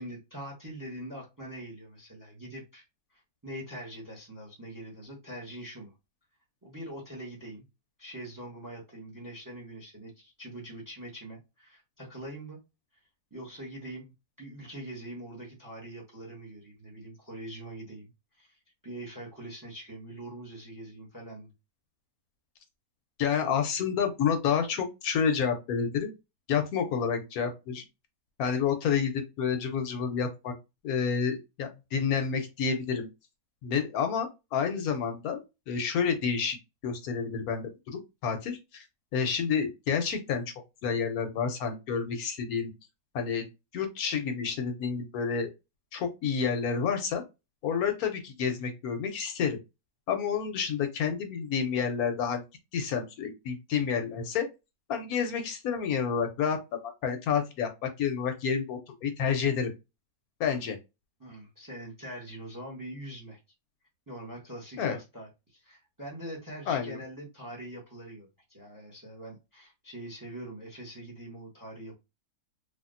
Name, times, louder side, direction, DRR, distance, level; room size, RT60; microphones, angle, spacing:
voice 1, 0.0-2.8 3.1-5.9 6.6-7.7 8.0-12.6 13.3-14.1 14.4-18.1 18.4-18.6 18.8-21.5 61.2-63.4 64.1-72.0, right 1 dB, 15° right, 0.7 m, -43 dB
voice 2, 23.2-26.1 26.5-27.8 28.4-30.5 30.8-33.1 33.6-36.6 36.8-38.9 39.1-40.4 40.8-42.7 43.1-43.4 43.7-45.5 45.9-47.2 47.6-49.6 50.1-52.4 52.7-54.5 54.9-59.7 60.4-60.8 64.8-65.0 66.7-67.0, left 6 dB, 75° left, 1.1 m, -29 dB
3.4 x 2.3 x 2.5 m
omnidirectional pair, 1.7 m